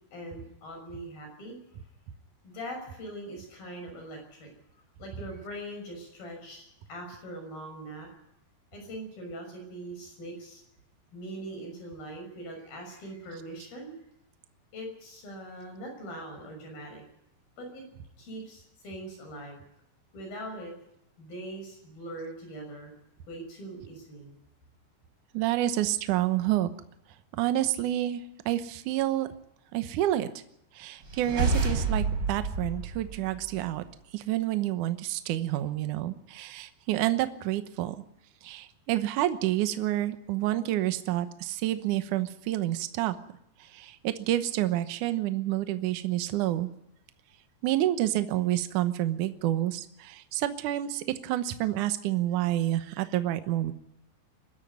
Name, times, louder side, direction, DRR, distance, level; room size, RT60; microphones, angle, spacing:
voice 1, 0.1-1.6 2.4-4.5 5.0-8.1 8.7-10.6 11.1-13.9 14.7-17.0 17.6-17.8 18.2-19.6 20.1-20.7 21.2-22.9 23.3-24.4, right 1 dB, 55° left, 3 dB, 7.8 m, -41 dB
voice 2, 25.3-26.7 27.4-29.3 29.7-30.3 30.8-33.8 34.1-38.0 38.4-43.2 43.8-46.7 47.6-53.7, right 14 dB, 80° right, 10 dB, 1.8 m, -28 dB
sound 1, 31.0-33.8, right 4 dB, 25° right, 5.4 m, -29 dB
23.0 x 13.0 x 9.4 m, 0.81 s
omnidirectional pair, 5.1 m